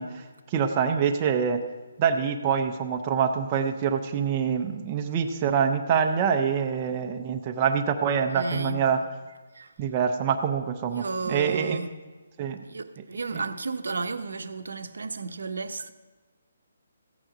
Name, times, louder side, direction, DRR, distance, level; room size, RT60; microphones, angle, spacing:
voice 1, 0.0-1.6 2.0-9.0 9.8-11.8 12.4-12.6 13.3-13.4, right 7 dB, 15° right, 0.4 m, -25 dB
voice 2, 8.3-8.9 9.5-9.7 10.9-12.0 12.6-15.9, right 3 dB, 75° right, 0.7 m, -33 dB
14.5 x 8.9 x 4.9 m
hypercardioid pair, 180°, 0 cm